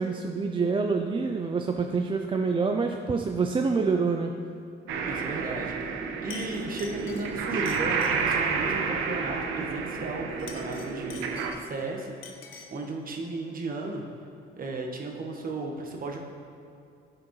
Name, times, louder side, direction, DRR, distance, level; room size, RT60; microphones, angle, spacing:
voice 1, 0.0-4.3, right 4 dB, 25° right, 4 dB, 0.4 m, -26 dB
sound 1, 4.9-11.5, right 5 dB, 90° right, 0.7 m, -30 dB
voice 2, 5.1-12.1 12.7-14.0 14.6-16.2, right 2 dB, 45° right, 1 dB, 1.2 m, -35 dB
Chink clink, 5.8-6.0 6.3-8.5 10.3-11.8 12.2-12.8, left 6 dB, 85° left, 0.8 m, -46 dB
11.5 x 5.0 x 3.1 m, 2.6 s
cardioid pair, 90°, 20 cm